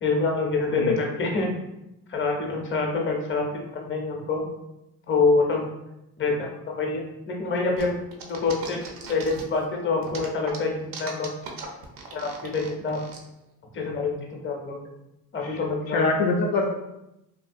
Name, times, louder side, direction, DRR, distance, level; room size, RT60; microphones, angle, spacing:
voice 1, 0.0-1.5 2.1-4.4 5.1-5.7 6.2-7.0 7.3-7.9 8.3-11.3 12.1-13.0 13.7-14.8 15.3-16.0, left 3 dB, 30° left, 0 dB, 0.7 m, -26 dB
sound 1, 7.8-9.6 10.0-13.2, right 4 dB, 60° right, 0.6 m, -39 dB
voice 2, 15.9-16.7, left 3 dB, 65° left, 0 dB, 0.5 m, -24 dB
2.7 x 2.3 x 2.5 m, 0.89 s
cardioid pair, 80°, 38 cm